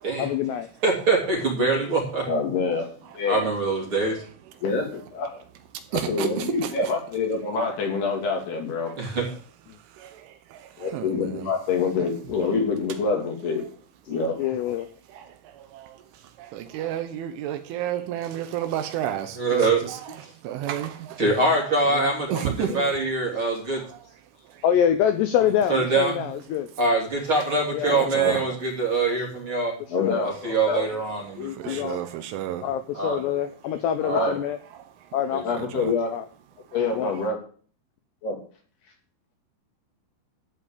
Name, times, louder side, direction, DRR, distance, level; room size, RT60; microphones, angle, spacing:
voice 1, 0.2-0.7 1.2-1.3 3.6-3.7 14.4-14.9 22.4-22.9 24.6-26.7 27.7-28.6 30.0-30.3 31.4-32.0 32.6-34.6 35.1-35.4 36.1-36.3 36.9-37.1, left 9 dB, 90° left, 9 dB, 2.4 m, -26 dB
voice 2, 0.8-2.2 3.3-4.2 9.0-9.2 19.3-19.8 21.2-23.8 25.7-26.1 26.8-29.7 30.2-31.8 32.9-33.2 34.0-34.3 35.3-35.4, right 3 dB, 30° right, -1 dB, 2.9 m, -24 dB
voice 3, 2.3-2.9 3.1-3.5 4.6-5.4 5.9-8.9 10.8-13.6 14.1-14.4 28.2-28.4 29.9-30.9 34.1-34.4 35.4-36.1 36.7-37.4 38.2-38.4, left 4 dB, 55° left, 2 dB, 4.1 m, -26 dB
voice 4, 5.9-6.7 10.0-10.1 10.9-11.5 15.2-15.3 15.7-16.0 16.4-20.0 20.4-21.2 21.9-22.8 27.8-28.4 31.6-32.6 35.6-35.9, right 11 dB, 75° right, 9 dB, 3.2 m, -31 dB
13.5 x 5.1 x 8.5 m, 0.43 s
omnidirectional pair, 6.0 m